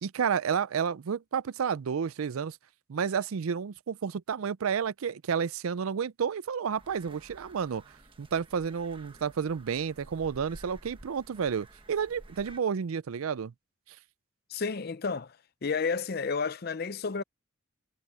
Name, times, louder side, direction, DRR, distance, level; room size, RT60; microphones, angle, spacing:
voice 1, 0.0-2.6 2.9-7.8 8.2-13.5 13.9-14.0, right 7 dB, 85° right, 0.5 m, -31 dB
sound 1, 6.8-12.6, right 1 dB, 25° right, 1.3 m, -53 dB
voice 2, 14.5-15.4 15.6-17.2, left 5 dB, 45° left, 0.6 m, -31 dB
head